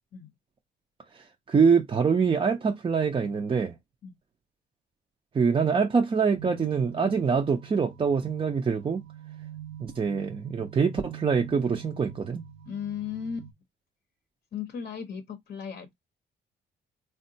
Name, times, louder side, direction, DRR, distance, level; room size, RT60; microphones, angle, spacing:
voice 1, 1.1-3.7 5.3-9.0 9.8-12.4, right 5 dB, 25° right, 0.5 m, -25 dB
sound 1, 6.4-13.5, right 10 dB, 80° right, 0.7 m, -45 dB
voice 2, 12.7-13.5 14.5-15.9, left 7 dB, 50° left, 0.6 m, -36 dB
3.6 x 2.2 x 2.6 m
cardioid pair, 90°, 20 cm